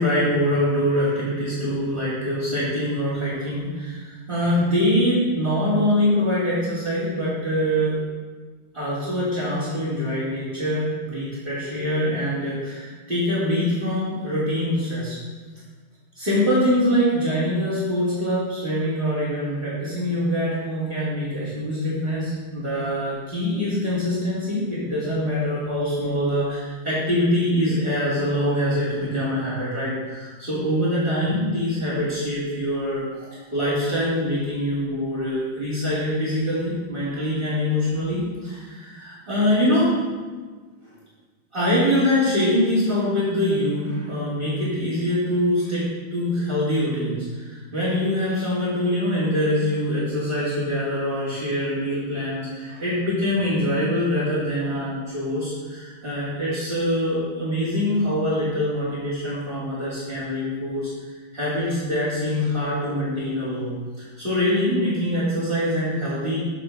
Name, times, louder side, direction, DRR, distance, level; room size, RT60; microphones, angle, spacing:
voice 1, 0.0-7.9 8.7-15.2 16.1-40.0 41.5-45.9 46.1-60.9 61.3-66.4, left 1 dB, 25° right, -11 dB, 3.0 m, -24 dB
9.0 x 4.9 x 6.3 m, 1.4 s
omnidirectional pair, 2.2 m